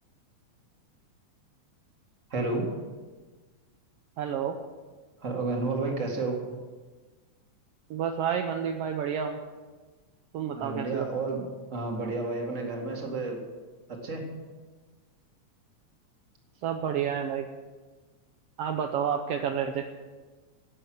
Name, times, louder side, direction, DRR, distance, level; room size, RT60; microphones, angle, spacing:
voice 1, 2.3-2.7 5.2-6.4 10.6-11.4 11.7-13.4 13.9-14.2, right 3 dB, 30° right, 1 dB, 2.1 m, -31 dB
voice 2, 4.2-4.6 7.9-9.4 10.3-11.0 16.6-17.4 18.6-19.9, right 8 dB, 75° right, 5 dB, 1.4 m, -29 dB
12.5 x 7.9 x 7.9 m, 1.3 s
omnidirectional pair, 3.4 m